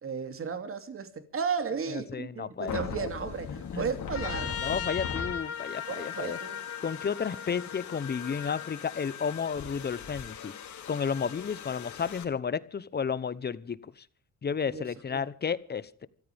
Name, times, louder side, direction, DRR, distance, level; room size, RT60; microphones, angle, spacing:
voice 1, 0.0-4.6 5.9-6.7 14.7-14.8 15.1-15.2, right 6 dB, 45° right, 2.7 m, -34 dB
voice 2, 1.9-3.1 3.5-3.9 4.6-6.4 6.8-10.5 10.9-14.0 14.4-16.1, left 6 dB, 35° left, 0.9 m, -32 dB
sound 1, 2.7-12.2, left 7 dB, 70° left, 2.8 m, -40 dB
Trumpet, 4.1-8.7, left 8 dB, 50° left, 1.7 m, -38 dB
27.5 x 14.5 x 3.5 m
cardioid pair, 90°, 30 cm